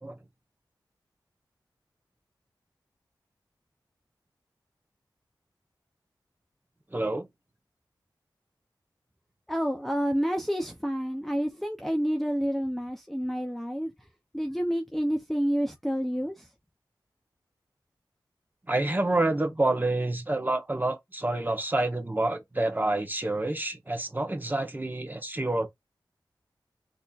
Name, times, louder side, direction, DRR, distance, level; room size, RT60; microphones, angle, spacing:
voice 1, 6.9-7.3 18.7-25.7, right 2 dB, 25° right, 1.0 m, -28 dB
voice 2, 9.5-13.9 14.3-16.5, equal, 5° left, 0.6 m, -29 dB
4.1 x 2.7 x 2.3 m
cardioid pair, 45°, 8 cm